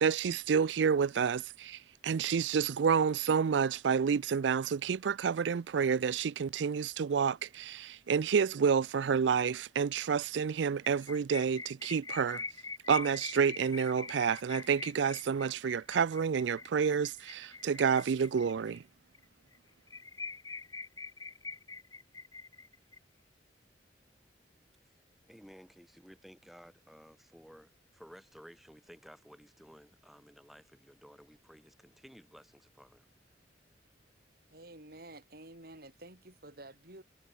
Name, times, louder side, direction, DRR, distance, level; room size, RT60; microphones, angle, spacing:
voice 1, 0.0-12.4 12.9-18.8, right 6 dB, 75° right, 0.4 m, -29 dB
sound 1, 10.8-18.8 19.2-19.3 19.5-19.6 19.9-23.0, left 4 dB, 20° left, 0.7 m, -44 dB
voice 2, 25.3-33.1, equal, ahead, 7.8 m, -55 dB
voice 3, 34.5-37.0, right 1 dB, 55° right, 6.5 m, -51 dB
head